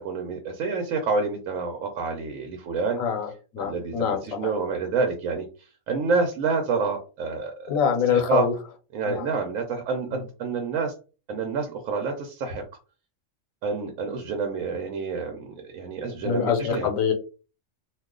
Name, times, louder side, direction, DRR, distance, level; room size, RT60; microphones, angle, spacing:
voice 1, 0.0-3.0 3.6-5.5 5.9-7.7 8.1-8.5 8.9-10.9 11.3-12.6 13.6-16.9, right 4 dB, 85° right, 3 dB, 1.0 m, -28 dB
voice 2, 3.5-4.5 7.7-8.5 9.0-9.3 10.1-10.2 16.2-17.1, left 7 dB, 90° left, 5 dB, 1.1 m, -24 dB
2.4 x 2.3 x 3.6 m, 0.33 s
omnidirectional pair, 1.4 m